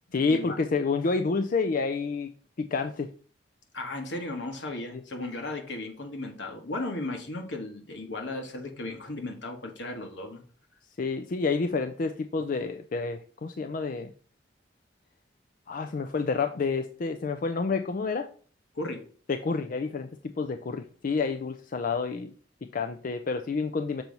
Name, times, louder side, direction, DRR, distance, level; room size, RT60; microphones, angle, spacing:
voice 1, 0.1-2.3 2.6-3.1 4.9-5.0 11.0-14.1 15.7-18.3 19.3-22.3 22.6-24.0, left 4 dB, 50° left, 0.4 m, -29 dB
voice 2, 3.7-10.4 18.7-19.1, left 2 dB, 75° left, 1.4 m, -35 dB
6.9 x 3.0 x 5.3 m
head